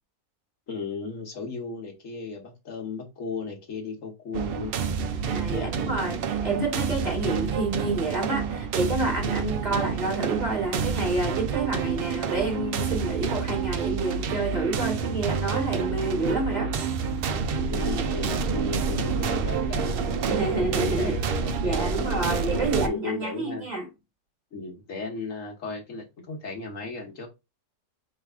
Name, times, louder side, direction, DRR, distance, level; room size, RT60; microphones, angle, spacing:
voice 1, 0.7-4.7 5.5-5.7 9.7-10.0 17.6-22.0 22.5-23.7 24.5-27.3, left 4 dB, 60° left, 1.4 m, -35 dB
sound 1, 4.3-22.9, right 5 dB, 65° right, 0.6 m, -28 dB
voice 2, 5.3-16.7 20.3-23.9, right 2 dB, 30° right, 1.4 m, -29 dB
4.7 x 3.2 x 3.4 m
omnidirectional pair, 1.5 m